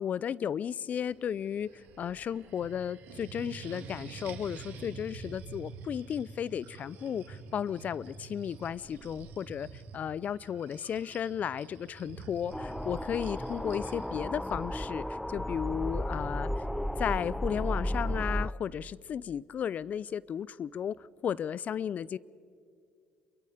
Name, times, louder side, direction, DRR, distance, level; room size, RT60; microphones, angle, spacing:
voice 1, 0.0-9.7 9.9-16.5 17.0-20.9 21.2-22.2, left 8 dB, 50° left, 0.5 m, -34 dB
sound 1, 0.9-14.6, right 5 dB, 75° right, 2.7 m, -48 dB
sound 2, 12.5-18.5, equal, 5° left, 0.6 m, -34 dB
27.5 x 23.5 x 5.1 m
supercardioid pair, 75°, 3 cm